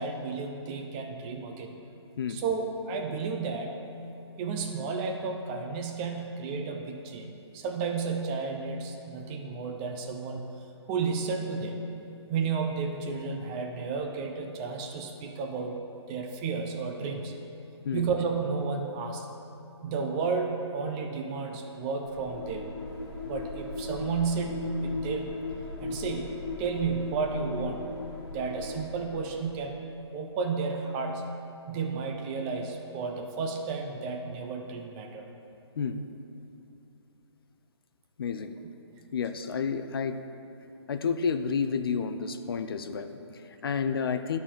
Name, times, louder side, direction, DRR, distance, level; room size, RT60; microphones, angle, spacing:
voice 1, 0.0-1.7 2.3-3.7 4.4-10.5 10.9-11.8 12.3-15.8 16.1-17.3 17.9-19.3 19.8-22.7 23.3-25.3 25.8-27.8 28.3-29.8 30.1-31.2 31.7-35.3, right 4 dB, 15° right, 3 dB, 0.4 m, -32 dB
sound 1, 22.0-29.8, left 2 dB, 35° left, 1.9 m, -38 dB
voice 2, 38.2-38.5 39.1-40.2 40.9-44.4, left 6 dB, 55° left, 9 dB, 0.5 m, -30 dB
10.5 x 4.1 x 6.2 m, 2.8 s
figure-of-eight pair, 145°, 15 cm